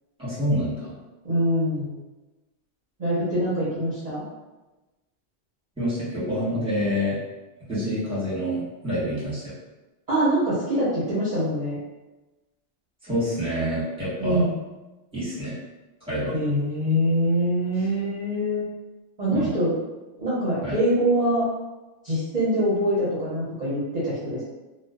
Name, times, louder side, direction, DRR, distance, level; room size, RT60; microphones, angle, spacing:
voice 1, 0.2-1.0 5.8-7.2 7.7-9.5 13.0-14.4 15.1-15.6 16.1-16.3 19.3-19.5 20.6-20.8, equal, 5° right, -10 dB, 1.0 m, -27 dB
voice 2, 1.2-1.9 3.0-4.2 10.1-11.8 14.2-14.6 16.3-18.6 19.2-19.7 20.2-21.4 22.0-24.4, equal, 45° right, -10 dB, 0.7 m, -24 dB
2.4 x 2.3 x 2.2 m, 1.1 s
omnidirectional pair, 1.1 m